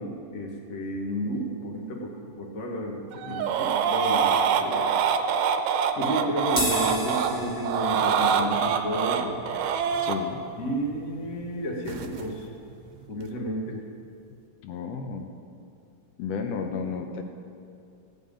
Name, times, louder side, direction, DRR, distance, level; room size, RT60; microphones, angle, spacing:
voice 1, 0.0-5.0 6.0-9.4 10.6-12.5 13.1-13.8, right 1 dB, 65° left, -1 dB, 0.8 m, -32 dB
sound 1, 3.1-7.3 7.6-10.2 11.9-12.2, right 7 dB, 80° right, 2.2 m, -25 dB
voice 2, 3.2-3.6 10.0-10.4 14.6-15.3 16.2-17.2, left 6 dB, 80° left, 5 dB, 1.4 m, -33 dB
sound 2, 6.5-13.1, left 1 dB, 5° left, 1.0 m, -36 dB
15.5 x 5.4 x 8.7 m, 2.5 s
omnidirectional pair, 3.7 m